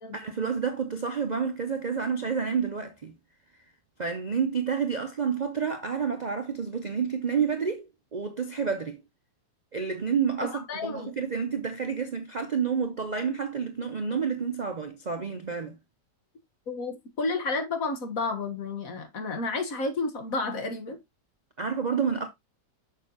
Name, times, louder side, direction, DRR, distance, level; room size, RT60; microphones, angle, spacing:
voice 1, 0.1-3.1 4.0-9.0 9.7-15.8 21.6-22.3, right 6 dB, 75° right, 0.4 m, -29 dB
voice 2, 10.4-11.1 16.7-21.0, left 3 dB, 50° left, 1.7 m, -31 dB
6.6 x 6.5 x 2.9 m
omnidirectional pair, 1.9 m